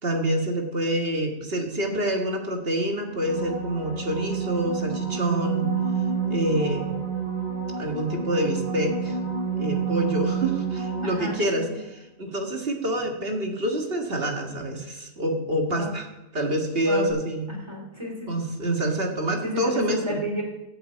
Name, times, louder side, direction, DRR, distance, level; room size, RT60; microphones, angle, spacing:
voice 1, 0.0-5.7 6.3-6.9 7.8-9.2 9.6-16.1 16.3-17.5 18.3-20.2, right 1 dB, 45° right, 3 dB, 2.0 m, -27 dB
sound 1, 3.1-11.7 17.1-17.2, right 6 dB, 75° right, 5.0 m, -29 dB
voice 2, 11.0-11.4 15.7-16.0 16.8-17.2 17.5-18.3 19.4-20.4, equal, 20° right, 0 dB, 3.3 m, -31 dB
11.5 x 8.2 x 8.4 m, 0.97 s
omnidirectional pair, 1.4 m